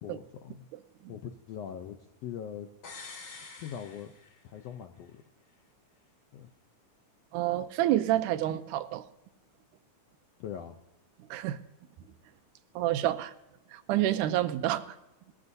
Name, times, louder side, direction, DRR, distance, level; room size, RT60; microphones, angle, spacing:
voice 1, 0.0-0.7 1.1-2.7 3.6-4.1 4.4-5.2 6.3-6.5 10.4-10.7, left 9 dB, 80° left, 5 dB, 1.4 m, -41 dB
sound 1, 2.8-4.8 5.1-5.2, left 4 dB, 45° left, 2.1 m, -47 dB
voice 2, 7.3-9.0 11.3-11.6 12.8-13.3 13.7-14.8, right 13 dB, 85° right, 12 dB, 2.1 m, -28 dB
19.5 x 13.5 x 2.7 m, 0.97 s
omnidirectional pair, 3.6 m